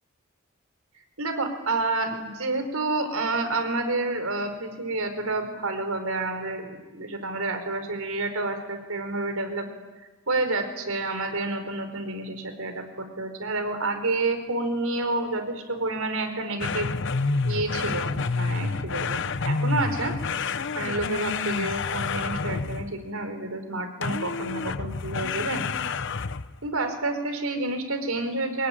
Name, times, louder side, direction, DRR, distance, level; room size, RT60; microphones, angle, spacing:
voice 1, 1.2-9.7 10.3-16.9 17.4-20.1 20.7-25.7 26.6-28.7, right 2 dB, 80° right, 7 dB, 4.7 m, -29 dB
sound 1, 16.6-23.0 24.0-26.6, left 4 dB, 60° left, 0.9 m, -28 dB
24.0 x 21.0 x 10.0 m, 1.2 s
head